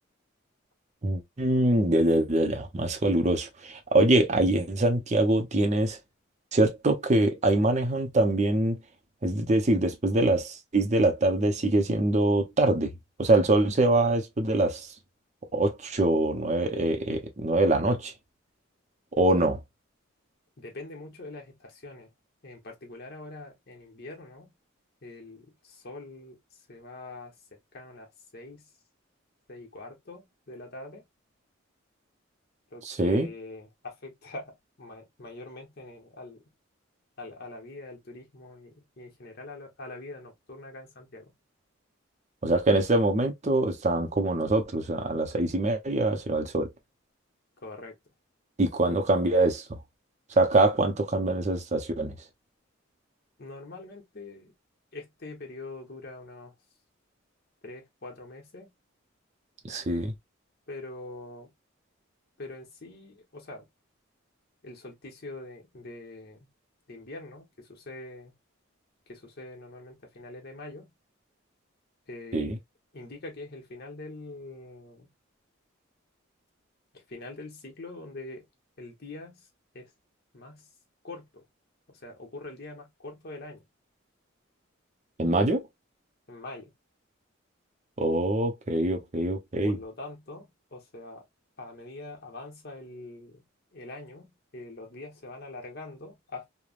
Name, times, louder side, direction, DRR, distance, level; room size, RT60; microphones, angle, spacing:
voice 1, 1.0-6.0 6.5-8.8 9.2-12.9 13.2-14.9 15.5-18.1 19.2-19.6 32.8-33.3 42.4-46.7 48.6-49.6 50.4-52.1 59.6-60.1 72.3-72.6 85.2-85.6 88.0-89.8, right 2 dB, 35° right, 0.6 m, -24 dB
voice 2, 20.6-22.1 22.4-24.5 25.0-26.4 26.7-27.3 27.7-28.7 29.5-31.0 32.7-36.4 37.2-41.3 47.6-48.0 53.4-54.5 54.9-56.5 57.6-58.7 60.7-61.5 62.4-63.6 64.6-66.4 66.9-68.3 69.1-70.9 72.1-72.5 72.9-75.1 76.9-78.4 78.8-79.4 79.7-79.9 80.3-80.7 81.0-81.4 81.9-83.6 86.3-86.7 89.6-91.2 91.6-93.4 93.7-96.5, left 2 dB, 50° left, 1.0 m, -43 dB
3.2 x 2.1 x 2.4 m
head